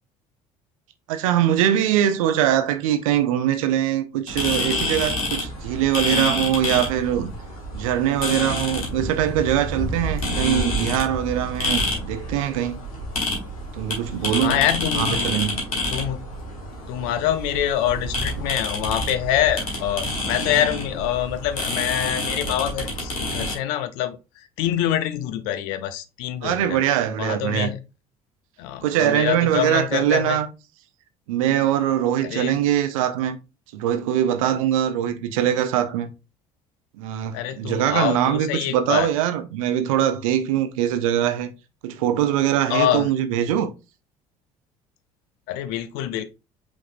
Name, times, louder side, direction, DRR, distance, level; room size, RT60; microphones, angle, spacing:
voice 1, 1.1-7.3 7.7-12.8 13.7-14.6 14.9-15.7 26.4-27.7 28.8-30.5 31.3-33.4 33.7-36.1 37.0-41.5 41.8-43.7, right 11 dB, 75° right, 0.6 m, -22 dB
sound 1, 4.3-23.5, left 1 dB, 85° left, 1.3 m, -28 dB
voice 2, 14.2-15.3 15.9-16.3 16.9-24.2 24.6-26.8 27.2-27.8 28.6-30.4 32.3-32.6 37.3-39.1 42.7-43.1 45.5-46.2, left 11 dB, 70° left, 0.6 m, -25 dB
5.2 x 3.7 x 2.5 m
hypercardioid pair, 55°, 18 cm